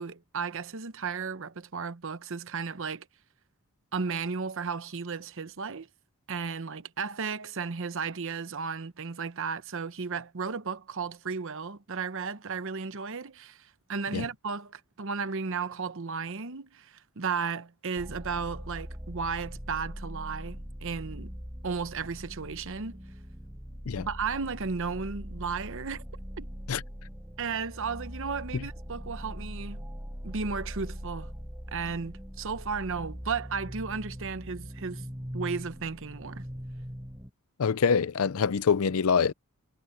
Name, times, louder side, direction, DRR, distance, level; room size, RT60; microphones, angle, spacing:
voice 1, 0.0-3.1 3.9-5.9 6.3-21.3 21.6-23.0 24.0-26.0 26.4-26.5 27.4-29.8 30.2-31.3 31.7-35.1 35.3-36.4, right 5 dB, 60° right, 0.9 m, -34 dB
sound 1, 18.0-37.3, equal, 10° right, 4.0 m, -41 dB
voice 2, 37.6-39.3, left 6 dB, 75° left, 0.5 m, -25 dB
head